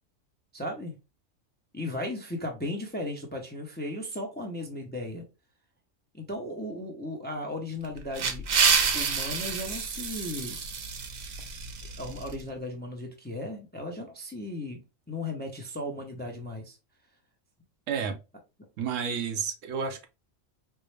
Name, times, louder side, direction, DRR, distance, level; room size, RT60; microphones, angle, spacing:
voice 1, 0.5-1.0 1.7-5.2 6.1-8.4 8.9-10.6 12.0-14.8 15.1-16.8, left 1 dB, 10° left, 0.5 m, -36 dB
sound 1, 7.8-12.4, right 6 dB, 60° right, 0.4 m, -28 dB
voice 2, 17.9-18.2 18.8-20.1, right 6 dB, 80° right, 1.0 m, -31 dB
4.4 x 2.0 x 3.2 m
omnidirectional pair, 1.3 m